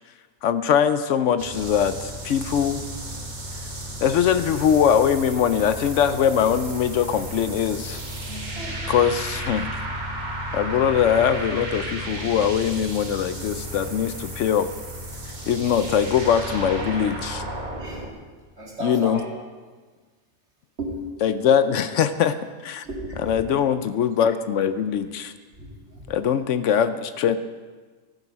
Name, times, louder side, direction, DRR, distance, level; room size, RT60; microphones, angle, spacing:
voice 1, 0.4-2.8 4.0-8.0 8.9-9.7 10.5-14.7 15.3-17.4 18.8-19.2 21.2-22.4 22.6-22.8 23.2-25.3 26.1-27.4, left 8 dB, 70° left, 11 dB, 0.9 m, -22 dB
sound 1, 1.4-18.1, right 1 dB, 35° right, 1.6 m, -33 dB
voice 2, 8.3-9.0 13.4-13.5 17.8-18.0 18.6-19.2 20.8-21.0 21.3-21.4 22.8-23.6 25.6-26.0, right 1 dB, 60° right, -3 dB, 3.1 m, -35 dB
14.5 x 8.0 x 5.8 m, 1.4 s
omnidirectional pair, 1.3 m